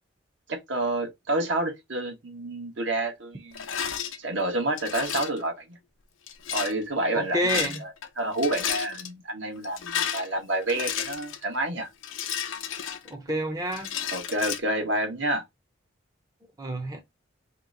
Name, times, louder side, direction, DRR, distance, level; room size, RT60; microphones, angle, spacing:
voice 1, 0.5-3.6 4.2-5.8 6.5-11.9 14.1-15.4, right 1 dB, 65° right, 1.1 m, -29 dB
Rattle, 3.5-4.2 4.8-5.4 6.3-6.7 7.4-8.1 8.3-9.1 9.6-11.4 12.0-13.3 13.7-14.6, left 8 dB, 85° left, 0.6 m, -32 dB
voice 2, 7.1-7.8 13.0-13.9 16.6-17.0, equal, 20° right, 0.6 m, -28 dB
3.1 x 2.9 x 3.7 m
head